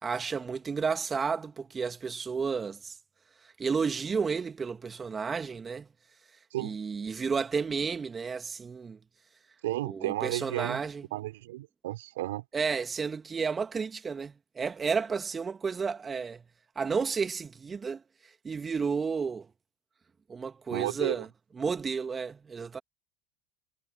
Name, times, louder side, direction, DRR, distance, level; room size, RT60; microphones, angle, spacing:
voice 1, 0.0-3.0 3.6-5.9 6.6-9.0 9.8-11.0 12.5-16.4 16.8-18.0 18.4-19.5 20.3-21.3 21.6-22.8, right 5 dB, 25° right, 2.3 m, -32 dB
voice 2, 9.6-10.8 11.1-12.4 20.7-21.3, right 16 dB, 70° right, 3.6 m, -33 dB
figure-of-eight pair, 75°, 0 cm